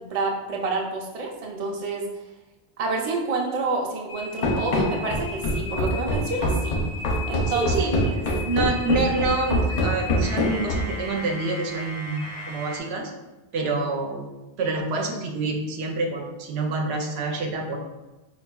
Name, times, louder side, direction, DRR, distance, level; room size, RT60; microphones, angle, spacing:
voice 1, 0.1-2.1 2.8-6.8 7.3-7.7 8.0-8.2, right 3 dB, 45° right, 0 dB, 0.5 m, -28 dB
sound 1, 4.1-12.8, left 2 dB, 85° left, 0.9 m, -37 dB
Run, 4.4-11.0, left 1 dB, 55° left, 0.5 m, -24 dB
voice 2, 7.5-8.0 8.4-13.1 13.5-14.3 14.6-17.8, right 3 dB, 85° right, 2 dB, 0.8 m, -27 dB
4.9 x 2.3 x 2.2 m, 1.1 s
omnidirectional pair, 1.1 m